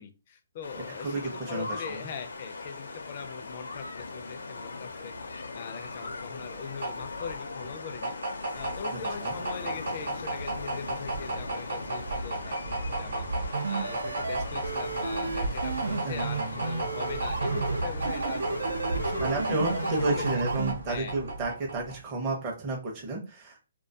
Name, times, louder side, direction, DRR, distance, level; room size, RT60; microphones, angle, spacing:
voice 1, 0.0-18.6 18.9-20.2 20.9-21.1, left 6 dB, 30° left, 7 dB, 0.3 m, -41 dB
sound 1, 0.6-20.4, left 3 dB, 80° left, 0.5 m, -40 dB
voice 2, 1.0-2.1 9.2-9.3 16.0-16.5 19.2-23.6, right 2 dB, 20° right, -2 dB, 0.5 m, -32 dB
sound 2, 6.0-22.1, right 2 dB, 70° right, 0.9 m, -34 dB
sound 3, 13.5-20.7, right 4 dB, 85° right, 0.3 m, -32 dB
2.3 x 2.2 x 2.6 m, 0.31 s
hypercardioid pair, 170°, 0 cm